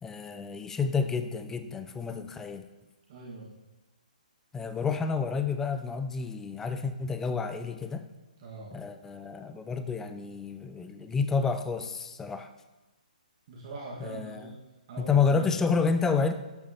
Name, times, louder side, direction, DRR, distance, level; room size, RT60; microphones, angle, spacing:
voice 1, 0.0-2.6 4.5-8.1 8.7-12.5 14.0-14.5 15.0-16.3, left 5 dB, 10° left, 9 dB, 0.5 m, -29 dB
voice 2, 3.1-3.6 8.4-8.7 13.5-14.5 14.9-15.5, right 3 dB, 40° right, -3 dB, 1.7 m, -42 dB
11.0 x 8.9 x 2.9 m, 1.1 s
figure-of-eight pair, 130°, 5 cm